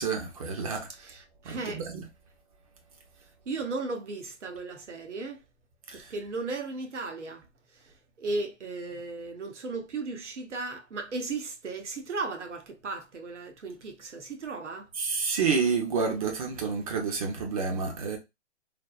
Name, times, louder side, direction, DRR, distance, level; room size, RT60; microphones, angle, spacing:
voice 1, 0.0-0.9 1.4-2.1 5.9-6.1 15.0-18.2, right 5 dB, 30° right, 0.6 m, -29 dB
voice 2, 1.0-1.8 3.5-5.4 5.9-7.4 8.2-14.9, right 3 dB, 80° right, 0.9 m, -36 dB
3.3 x 2.0 x 2.3 m
hypercardioid pair, 140°, 35 cm